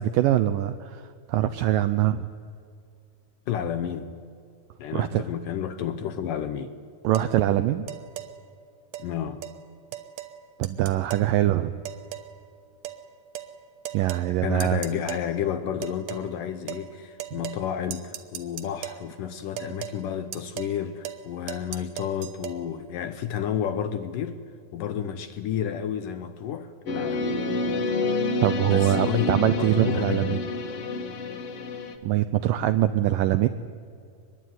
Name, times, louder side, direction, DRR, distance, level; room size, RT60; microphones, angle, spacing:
voice 1, 0.0-2.3 4.9-5.3 7.0-7.9 10.6-11.7 13.9-14.8 28.4-30.4 32.0-33.5, right 13 dB, 80° right, 12 dB, 2.0 m, -23 dB
voice 2, 3.5-4.1 4.8-6.7 9.0-9.4 14.4-24.4 24.7-27.4 28.7-30.4, left 9 dB, 70° left, 10 dB, 2.1 m, -31 dB
sound 1, 7.1-7.3 7.9-8.3 8.9-9.1 9.4-9.6 9.9-10.4 10.6-11.3 11.9-12.3 12.8-13.0 13.4-13.5 13.9-14.3 14.6-15.3 15.8-16.3 16.7-16.9 17.2-17.7 17.9-19.0 19.6-20.0 20.3-20.8 21.0-21.2 21.5-22.6, right 12 dB, 65° right, 2.6 m, -37 dB
sound 2, 26.9-32.0, left 3 dB, 50° left, 2.0 m, -28 dB
24.5 x 21.5 x 9.4 m, 2.4 s
omnidirectional pair, 4.7 m